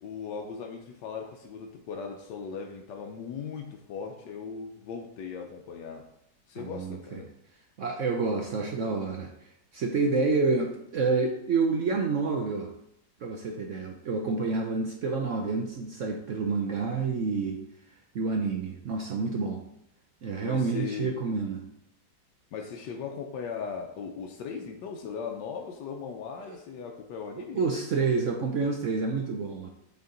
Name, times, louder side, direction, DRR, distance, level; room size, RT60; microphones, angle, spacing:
voice 1, 0.0-6.1 6.5-7.3 20.4-21.1 22.5-27.6, left 6 dB, 90° left, 2 dB, 1.3 m, -38 dB
voice 2, 6.6-7.2 7.8-9.3 9.7-12.7 13.2-17.6 18.1-19.6 20.2-21.6 26.5-26.6 27.5-29.7, right 4 dB, 60° right, 2 dB, 0.9 m, -28 dB
8.2 x 4.5 x 3.8 m, 0.78 s
omnidirectional pair, 1.8 m